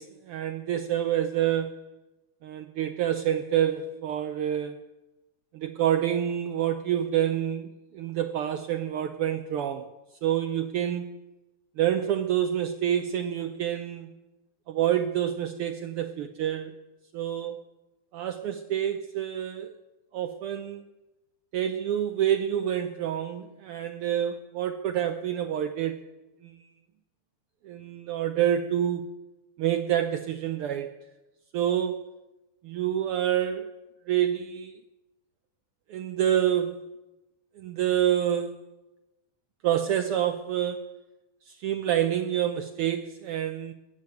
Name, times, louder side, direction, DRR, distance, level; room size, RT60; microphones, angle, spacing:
voice 1, 0.0-1.8 2.4-4.8 5.5-9.9 10.2-11.1 11.8-14.1 14.7-16.9 17.1-17.7 18.1-19.7 20.1-20.8 21.5-26.0 26.4-26.7 27.6-29.1 29.6-30.9 31.5-32.0 32.6-33.7 34.1-34.8 35.9-36.8 37.6-38.6 39.6-40.9 41.5-43.7, right 10 dB, 85° right, 7 dB, 1.2 m, -27 dB
19.5 x 7.5 x 8.9 m, 1.1 s
omnidirectional pair, 3.3 m